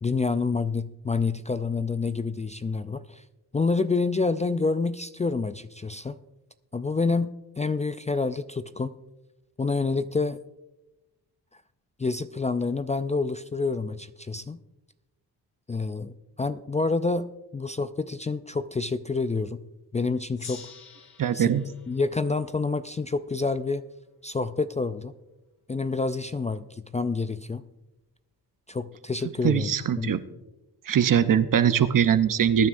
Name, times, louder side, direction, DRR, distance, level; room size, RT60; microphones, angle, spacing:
voice 1, 0.0-3.2 3.5-6.2 6.7-8.9 9.6-10.4 12.0-14.6 15.7-19.6 19.9-20.7 21.3-21.5 21.9-23.8 24.2-25.1 25.7-27.6 28.7-30.2, left 4 dB, 20° left, 12 dB, 0.4 m, -28 dB
Gong, 20.3-23.5, left 5 dB, 65° left, 3.6 m, -48 dB
voice 2, 21.2-21.6 29.4-30.2 30.9-32.7, right 8 dB, 55° right, 12 dB, 0.8 m, -21 dB
21.0 x 9.5 x 2.6 m, 1.0 s
cardioid pair, 80°, 40 cm